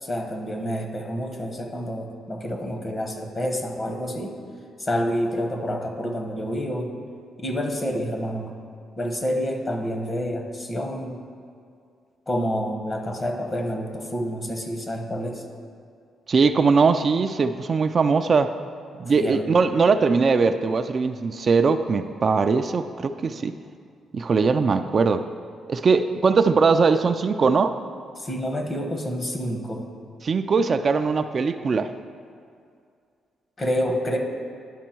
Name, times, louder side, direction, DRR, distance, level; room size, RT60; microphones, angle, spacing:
voice 1, 0.0-4.4 4.8-6.9 7.4-8.5 9.0-11.2 12.3-15.4 19.1-19.5 28.2-29.9 33.6-34.2, equal, 30° left, 4 dB, 1.2 m, -28 dB
voice 2, 16.3-18.5 19.0-23.5 24.1-25.3 25.7-27.7 30.2-31.9, right 4 dB, 45° right, 8 dB, 0.3 m, -20 dB
11.0 x 5.4 x 4.5 m, 2.3 s
cardioid pair, 75°, 0 cm